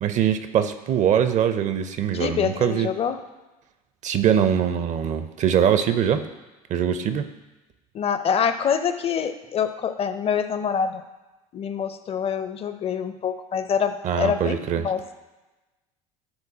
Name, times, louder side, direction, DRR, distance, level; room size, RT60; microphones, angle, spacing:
voice 1, 0.0-2.9 4.0-6.2 6.7-7.3 14.0-14.9, right 9 dB, 40° right, 9 dB, 0.5 m, -22 dB
voice 2, 2.2-3.2 7.9-11.0 11.5-15.0, left 7 dB, 30° left, 10 dB, 0.5 m, -25 dB
9.6 x 3.8 x 2.7 m, 1.1 s
hypercardioid pair, 70°, 19 cm